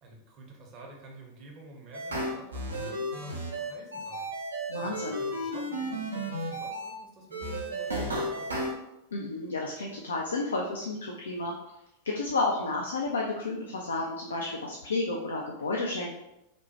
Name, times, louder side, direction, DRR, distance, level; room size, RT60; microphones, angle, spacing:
voice 1, 0.0-4.3 4.8-8.7, right 2 dB, 35° right, 0 dB, 0.6 m, -49 dB
sound 1, 1.9-6.9 7.3-8.7, right 1 dB, 75° right, 0.4 m, -33 dB
voice 2, 4.7-5.2 9.1-11.5 12.0-16.1, left 3 dB, 70° left, -1 dB, 0.3 m, -31 dB
2.9 x 2.0 x 2.8 m, 0.89 s
figure-of-eight pair, 90°, 0 cm